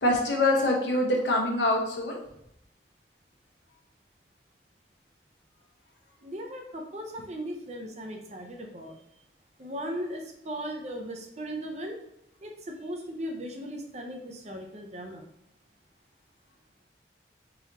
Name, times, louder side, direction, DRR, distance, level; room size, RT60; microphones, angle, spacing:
voice 1, 0.0-2.2, left 1 dB, 85° left, 0 dB, 1.0 m, -24 dB
voice 2, 6.2-8.9 9.6-12.0 12.4-15.2, equal, 40° right, 3 dB, 0.7 m, -37 dB
4.5 x 3.9 x 2.9 m, 0.79 s
head